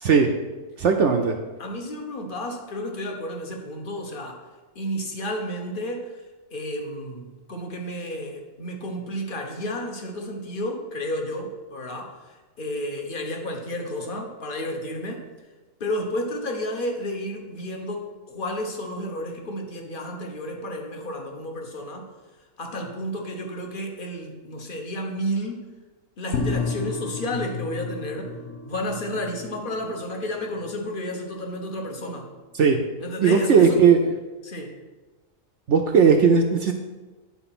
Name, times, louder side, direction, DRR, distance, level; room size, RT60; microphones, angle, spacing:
voice 1, 0.0-0.3 0.8-1.4 32.5-32.8 33.2-34.0 35.7-36.7, right 6 dB, 65° right, 3 dB, 0.9 m, -17 dB
voice 2, 1.6-4.4 4.7-6.1 6.5-12.1 12.6-15.2 15.8-22.1 22.6-25.7 26.2-28.3 28.7-32.3 33.0-33.8 34.4-34.7, equal, 40° left, 2 dB, 1.3 m, -31 dB
sound 1, 26.3-33.5 33.8-33.9, left 4 dB, 85° left, 1.4 m, -34 dB
9.9 x 4.4 x 5.9 m, 1.2 s
omnidirectional pair, 1.5 m